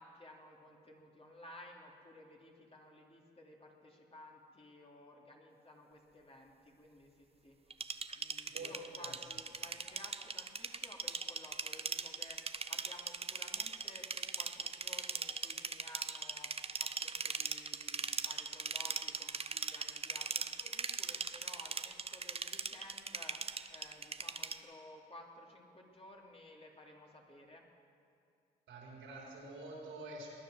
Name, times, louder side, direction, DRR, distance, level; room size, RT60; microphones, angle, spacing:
voice 1, 0.0-27.6, left 1 dB, 30° left, 0 dB, 2.7 m, -56 dB
sound 1, 7.7-24.6, right 4 dB, 30° right, 0.8 m, -39 dB
voice 2, 8.5-9.1 28.7-30.4, right 2 dB, 80° right, -3 dB, 4.8 m, -47 dB
20.5 x 9.5 x 6.4 m, 2.4 s
supercardioid pair, 60°, 20 cm